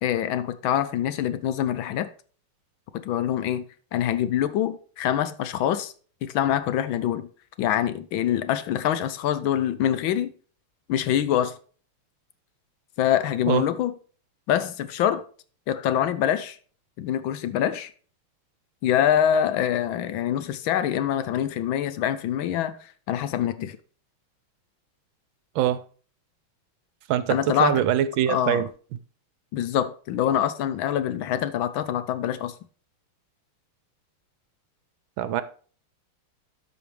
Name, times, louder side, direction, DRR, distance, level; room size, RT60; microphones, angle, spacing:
voice 1, 0.0-2.1 3.0-3.6 3.9-5.9 6.2-7.3 7.6-10.3 10.9-11.6 13.0-13.9 14.5-15.2 15.7-16.6 17.0-17.9 18.8-23.8 27.3-27.8 28.3-28.6 29.5-32.5, left 10 dB, 75° left, 1.3 m, -25 dB
voice 2, 27.1-28.7 35.2-35.4, right 11 dB, 75° right, 1.3 m, -23 dB
13.0 x 5.1 x 3.2 m
omnidirectional pair, 2.4 m